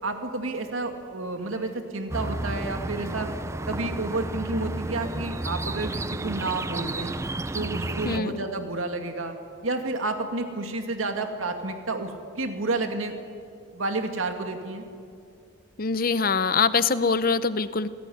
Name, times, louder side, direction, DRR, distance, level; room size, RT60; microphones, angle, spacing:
voice 1, 0.0-3.3 3.7-7.1 7.5-9.3 9.6-13.2 13.7-14.8, right 2 dB, 85° right, 5 dB, 2.4 m, -30 dB
sound 1, 2.1-8.2, right 2 dB, 15° right, 0.5 m, -32 dB
voice 2, 15.8-17.9, left 5 dB, 45° left, 14 dB, 0.8 m, -23 dB
27.0 x 18.0 x 9.4 m, 2.4 s
head